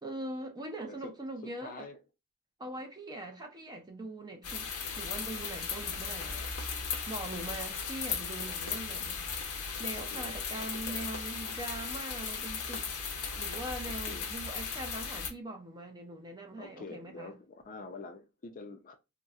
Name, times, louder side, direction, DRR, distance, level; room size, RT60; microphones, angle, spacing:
voice 1, 0.0-1.9 2.6-6.4 7.1-9.2 9.8-12.9 13.4-17.4, right 1 dB, 20° right, 0.5 m, -42 dB
voice 2, 1.4-2.0 5.3-5.4 6.3-6.6 9.8-11.1 13.8-14.3 16.6-18.9, left 3 dB, 40° left, 0.4 m, -47 dB
sound 1, 4.4-15.3, left 5 dB, 85° left, 0.7 m, -37 dB
3.9 x 2.1 x 2.3 m
head